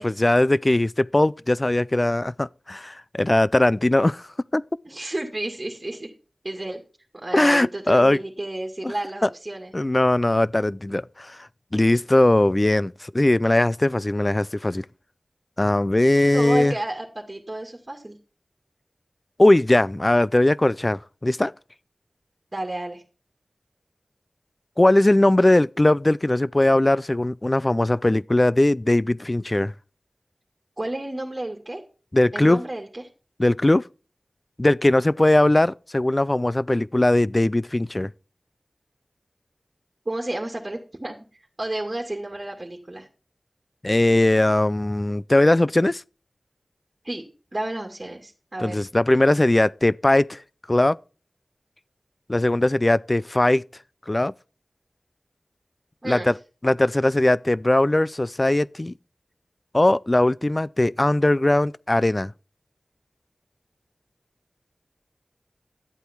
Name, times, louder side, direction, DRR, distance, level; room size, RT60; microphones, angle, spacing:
voice 1, 0.0-4.2 4.5-4.6 7.3-8.2 8.8-8.9 9.2-9.3 9.7-14.9 15.6-16.8 19.4-21.5 24.8-29.7 32.1-32.6 33.4-33.9 34.6-38.1 43.8-46.0 48.6-50.4 50.7-51.0 52.3-53.6 54.1-54.3 56.0-56.3 56.6-58.9 59.7-62.3, left 1 dB, 35° left, 0.4 m, -20 dB
voice 2, 4.8-6.1 6.4-6.8 7.1-9.7 16.2-18.2 22.5-23.0 30.8-31.8 32.3-33.0 40.1-43.1 47.0-47.2 47.5-48.8 56.0-56.3, right 1 dB, 35° right, 2.3 m, -31 dB
12.0 x 8.3 x 4.5 m
wide cardioid pair, 45°, 0 cm